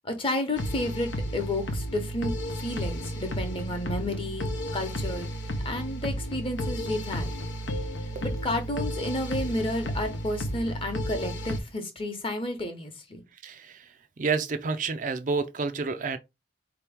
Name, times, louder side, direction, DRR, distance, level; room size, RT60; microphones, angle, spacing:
voice 1, 0.0-5.3 5.6-7.3 8.2-13.2, left 1 dB, 30° left, 0.9 m, -31 dB
sound 1, 0.6-11.6, equal, 70° left, 0.7 m, -33 dB
voice 2, 13.4-13.9 14.2-16.2, right 4 dB, 40° right, 0.4 m, -29 dB
4.3 x 2.9 x 3.5 m
head